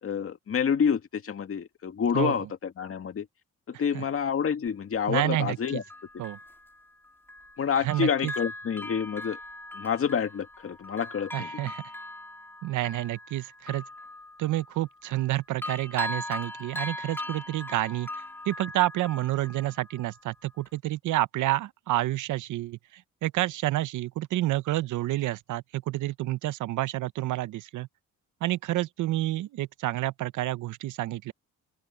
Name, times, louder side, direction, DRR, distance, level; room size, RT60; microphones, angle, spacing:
voice 1, 0.0-3.3 3.7-5.8 6.1-6.2 7.6-9.4 9.7-11.7, left 7 dB, 45° left, 2.1 m, -28 dB
Bell, 4.7-4.8 5.6-7.6 7.9-15.3 15.6-20.2 20.7-20.8, left 1 dB, 5° left, 2.1 m, -40 dB
voice 2, 5.1-5.8 6.2-6.4 7.8-8.3 11.3-11.8 12.6-13.8 14.4-18.1 18.5-27.9 28.4-31.3, right 16 dB, 80° right, 0.8 m, -29 dB
open air
cardioid pair, 90°, 30 cm